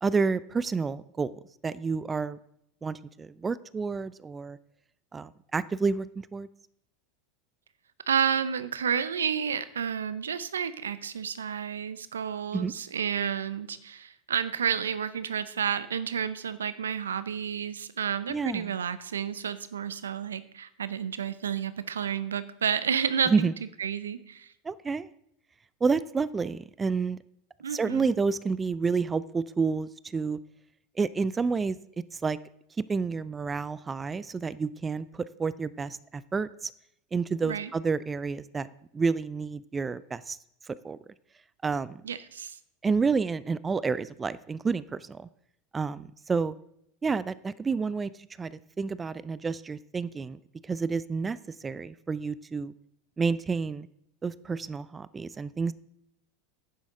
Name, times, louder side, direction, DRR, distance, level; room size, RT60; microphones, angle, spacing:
voice 1, 0.0-2.4 2.8-4.6 5.1-6.5 12.5-12.7 18.3-18.7 23.3-23.5 24.6-25.1 25.8-27.2 27.7-30.4 31.0-31.8 32.2-32.4 32.9-36.7 37.1-38.7 38.9-40.4 40.7-41.0 41.6-42.0 42.8-45.3 45.7-46.5 47.0-48.1 48.4-51.4 51.6-52.7 53.2-53.9 54.2-55.7, right 4 dB, 20° right, 18 dB, 0.4 m, -29 dB
voice 2, 8.1-23.5 23.8-24.5 27.6-28.2 37.4-37.7 42.0-42.6, right 7 dB, 90° right, 14 dB, 0.6 m, -30 dB
10.5 x 9.4 x 3.8 m, 0.75 s
hypercardioid pair, 90°, 0 cm